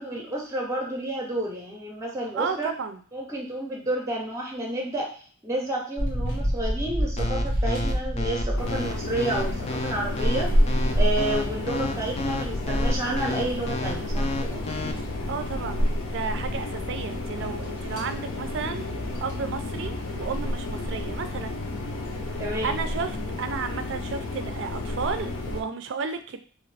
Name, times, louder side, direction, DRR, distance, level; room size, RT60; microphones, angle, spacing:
voice 1, 0.0-2.7 3.1-10.5 10.9-14.6 22.4-22.8, right 1 dB, 15° right, 0 dB, 0.6 m, -30 dB
voice 2, 2.4-3.0 15.3-18.9 19.2-21.6 22.3-26.4, right 5 dB, 60° right, 9 dB, 0.4 m, -33 dB
sound 1, 6.0-9.5 9.9-13.6 13.9-14.0 14.4-15.7 16.0-16.2 16.6-16.7 17.6-18.1 19.1-19.3 20.1-20.3, equal, 90° left, 1.5 m, -30 dB
sound 2, 7.2-14.9, left 2 dB, 30° left, 0.3 m, -31 dB
sound 3, 8.6-25.6, left 1 dB, 70° left, 0.6 m, -29 dB
2.9 x 2.4 x 3.2 m, 0.43 s
head